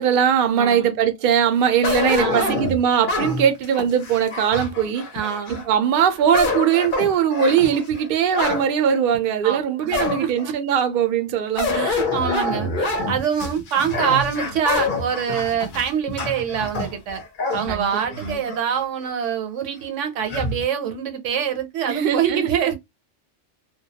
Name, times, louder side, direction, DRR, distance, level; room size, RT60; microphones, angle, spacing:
voice 1, 0.0-5.1 5.5-11.9 17.7-18.4 21.9-22.5, right 8 dB, 60° right, 0.6 m, -20 dB
voice 2, 0.5-0.9 2.1-2.7 5.1-5.6 9.4-10.5 11.7-17.2 17.5-22.7, right 8 dB, 75° right, 0.9 m, -25 dB
sound 1, 1.8-5.7 6.1-8.7 9.1-9.2 9.9-10.5 11.6-18.6 19.1-19.2 20.3-20.6, left 3 dB, 50° left, 0.7 m, -26 dB
2.3 x 2.2 x 2.7 m
omnidirectional pair, 1.3 m